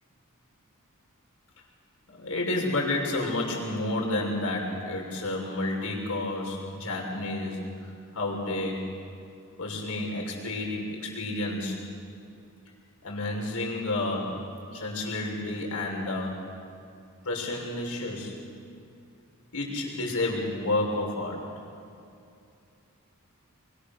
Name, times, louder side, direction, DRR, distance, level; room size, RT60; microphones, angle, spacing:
voice 1, 2.1-7.6 8.1-8.9 9.6-11.8 13.0-14.4 14.7-16.4 17.2-18.3 19.5-21.4, left 2 dB, 70° left, -1 dB, 6.3 m, -30 dB
25.5 x 23.5 x 6.8 m, 2.5 s
head